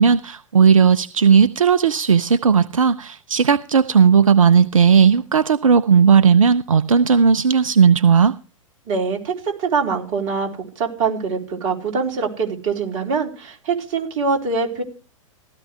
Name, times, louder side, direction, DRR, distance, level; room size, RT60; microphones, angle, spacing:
voice 1, 0.0-8.3, right 6 dB, 75° right, 0.7 m, -15 dB
voice 2, 8.9-10.5 10.8-14.8, right 5 dB, 40° right, 4.2 m, -23 dB
16.5 x 13.5 x 3.4 m
figure-of-eight pair, 105°, 17 cm